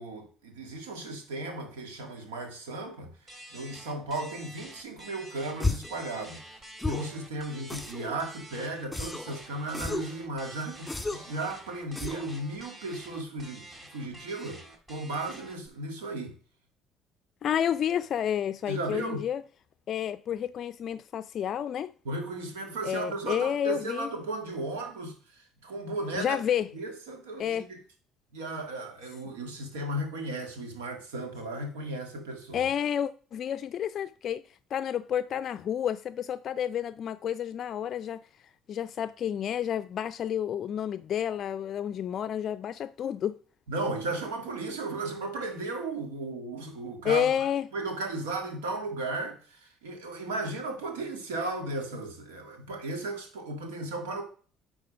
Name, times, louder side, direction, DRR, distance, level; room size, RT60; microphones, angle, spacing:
voice 1, 0.0-3.1 3.5-6.6 6.9-13.7 13.9-14.6 14.9-16.3 18.7-19.2 22.1-26.4 26.7-27.8 28.3-32.7 43.7-47.5 47.7-54.2, right 2 dB, 90° right, 1.7 m, -35 dB
sound 1, 3.3-15.7, right 1 dB, 30° right, 2.4 m, -48 dB
sound 2, 5.6-6.0 6.8-7.2 7.7-8.2 8.9-9.4 9.7-10.2 10.9-11.4 12.0-12.3, left 3 dB, 10° left, 1.5 m, -33 dB
voice 2, 17.4-19.4 19.9-21.9 22.8-24.1 26.2-26.7 27.4-27.7 32.5-34.4 34.7-38.2 38.7-43.4 47.0-47.7, left 9 dB, 55° left, 0.3 m, -30 dB
10.0 x 3.8 x 4.9 m
hypercardioid pair, 65°, 0 cm